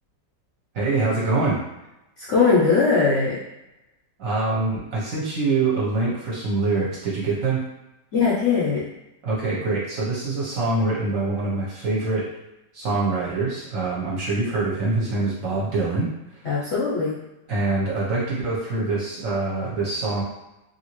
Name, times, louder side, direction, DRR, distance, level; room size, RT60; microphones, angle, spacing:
voice 1, 0.7-1.6 4.2-7.6 9.2-12.3 12.7-16.1 17.5-20.2, right 3 dB, 55° right, -6 dB, 1.1 m, -24 dB
voice 2, 2.2-3.4 8.1-8.9 16.4-17.2, left 4 dB, 60° left, -8 dB, 0.8 m, -20 dB
2.9 x 2.7 x 2.9 m, 0.93 s
omnidirectional pair, 1.9 m